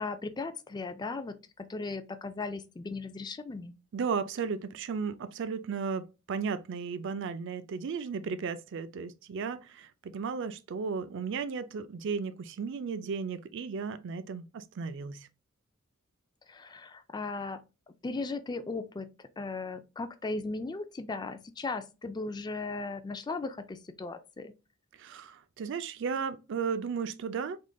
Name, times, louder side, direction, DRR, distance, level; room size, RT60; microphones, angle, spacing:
voice 1, 0.0-3.7 16.5-17.6 18.0-24.5, left 3 dB, 20° left, 0.3 m, -37 dB
voice 2, 3.9-15.3 25.0-27.6, right 5 dB, 60° right, 0.4 m, -35 dB
3.7 x 3.6 x 2.2 m
head